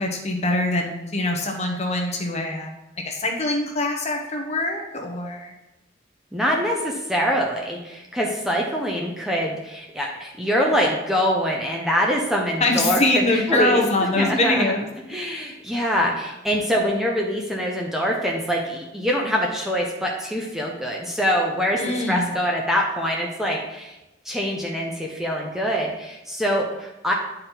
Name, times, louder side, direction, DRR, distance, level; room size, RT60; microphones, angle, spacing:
voice 1, 0.0-2.7 3.0-5.5 12.6-15.3 21.8-22.3, left 2 dB, 35° left, 2 dB, 1.0 m, -24 dB
voice 2, 6.3-13.8 14.2-14.7 15.1-24.0 24.3-27.1, equal, ahead, -1 dB, 0.7 m, -24 dB
9.5 x 4.3 x 4.0 m, 0.97 s
head